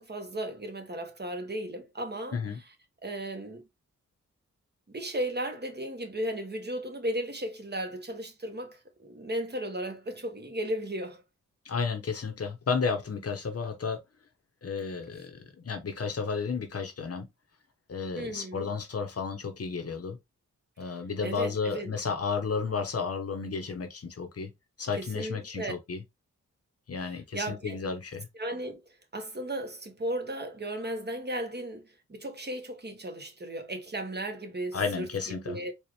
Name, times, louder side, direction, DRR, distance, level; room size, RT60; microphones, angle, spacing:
voice 1, 0.0-2.4 3.0-3.6 4.9-11.2 18.2-18.7 21.2-21.9 25.0-25.7 27.0-27.8 28.4-28.8 29.1-35.7, right 1 dB, 35° right, 1.2 m, -35 dB
voice 2, 11.6-14.0 14.6-17.3 17.9-20.2 20.8-24.5 24.8-26.0 26.9-28.3 34.7-35.6, left 5 dB, 50° left, 0.9 m, -32 dB
4.3 x 2.4 x 3.1 m
wide cardioid pair, 80°, 30 cm